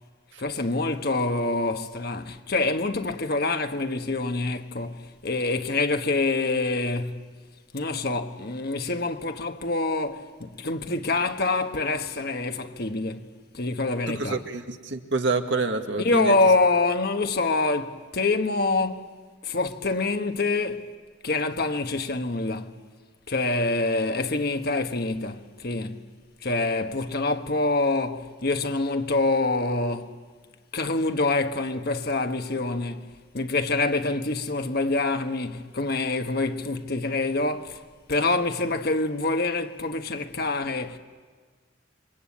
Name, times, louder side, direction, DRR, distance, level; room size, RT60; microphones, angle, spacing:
voice 1, 0.4-7.3 7.7-13.3 13.5-14.4 16.0-20.9 21.2-22.8 23.3-26.1 26.4-30.2 30.7-37.8 38.1-41.0, left 3 dB, 55° left, 1.3 m, -26 dB
voice 2, 14.1-16.4, right 3 dB, 65° right, 1.9 m, -27 dB
28.0 x 24.5 x 8.7 m
head